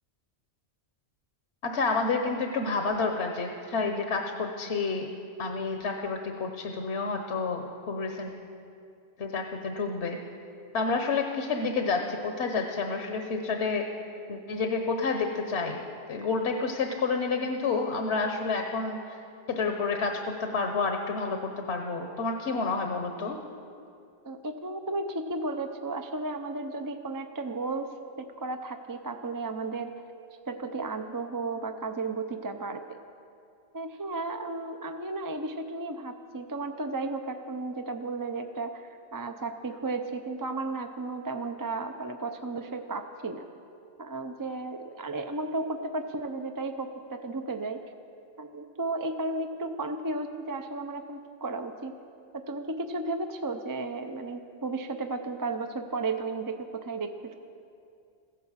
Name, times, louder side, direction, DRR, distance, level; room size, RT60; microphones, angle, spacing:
voice 1, 1.6-5.1 5.4-8.3 9.2-10.2 10.7-13.9 14.3-15.8 16.1-19.2 19.5-23.4, left 4 dB, 90° left, 4 dB, 1.2 m, -29 dB
voice 2, 24.2-29.9 30.5-32.8 33.7-43.5 44.0-47.8 48.4-51.9 52.3-57.4, right 3 dB, 25° right, 7 dB, 0.5 m, -34 dB
15.5 x 11.0 x 7.3 m, 2.5 s
omnidirectional pair, 1.1 m